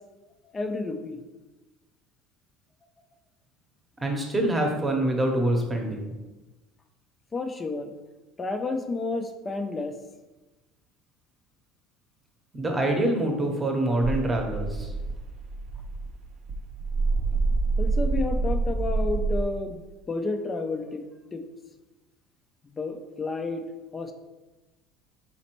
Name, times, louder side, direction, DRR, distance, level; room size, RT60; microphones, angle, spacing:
voice 1, 0.5-1.2 7.3-7.9 8.4-9.9 17.8-21.0 21.3-21.4 22.6-23.6 23.9-24.1, left 3 dB, 20° left, 7 dB, 0.4 m, -31 dB
voice 2, 4.0-6.1 12.5-14.9, right 1 dB, 15° right, 2 dB, 0.9 m, -25 dB
sound 1, 14.0-19.4, right 3 dB, 50° right, 0.4 m, -27 dB
4.1 x 4.1 x 3.0 m, 1.1 s
cardioid pair, 120°, 0 cm